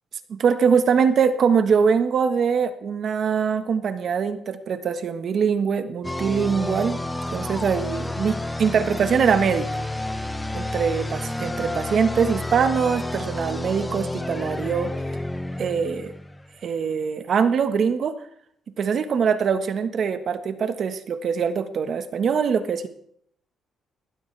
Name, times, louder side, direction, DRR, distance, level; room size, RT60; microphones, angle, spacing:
voice 1, 0.3-7.0 7.3-9.8 10.5-14.9 15.6-16.1 16.6-18.1 18.8-22.9, right 6 dB, 55° right, 9 dB, 1.4 m, -23 dB
sound 1, 6.0-16.7, left 1 dB, 10° left, 1.0 m, -30 dB
19.5 x 17.0 x 3.4 m, 0.68 s
cardioid pair, 90°, 0 cm